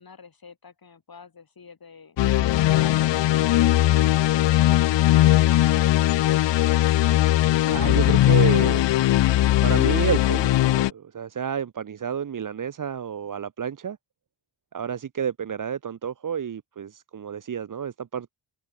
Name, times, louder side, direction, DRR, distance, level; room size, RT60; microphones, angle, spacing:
voice 1, 0.0-2.2, left 5 dB, 50° left, 4.3 m, -48 dB
sound 1, 2.2-10.9, left 14 dB, 70° left, 0.5 m, -19 dB
voice 2, 7.7-8.9 9.6-14.0 14.7-18.3, right 8 dB, 45° right, 0.8 m, -30 dB
open air
cardioid pair, 80°, 46 cm